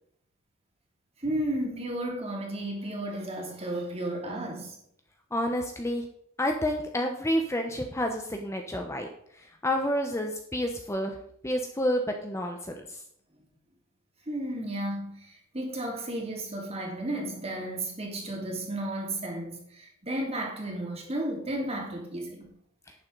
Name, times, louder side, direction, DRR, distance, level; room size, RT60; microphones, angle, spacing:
voice 1, 1.2-4.8 14.3-22.5, right 1 dB, 30° right, 3.0 m, -33 dB
voice 2, 5.3-6.0 6.4-9.1 9.4-11.2 11.4-13.0, equal, 15° left, 1.0 m, -29 dB
11.5 x 9.5 x 4.0 m
head